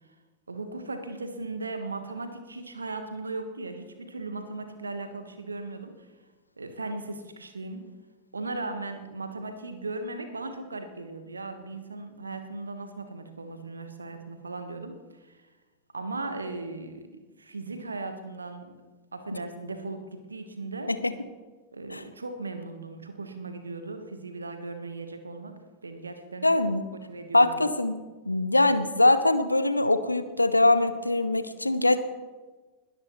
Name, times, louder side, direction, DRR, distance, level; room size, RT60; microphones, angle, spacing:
voice 1, 0.5-6.1 6.6-7.9 8.3-15.4 15.9-18.7 19.1-20.9 21.7-26.5 26.9-27.6, right 3 dB, 75° right, 8 dB, 1.4 m, -37 dB
voice 2, 26.4-26.8 27.3-27.9 28.3-32.0, left 2 dB, 85° left, 12 dB, 0.8 m, -22 dB
21.0 x 12.5 x 3.1 m, 1.3 s
figure-of-eight pair, 90°, 0 cm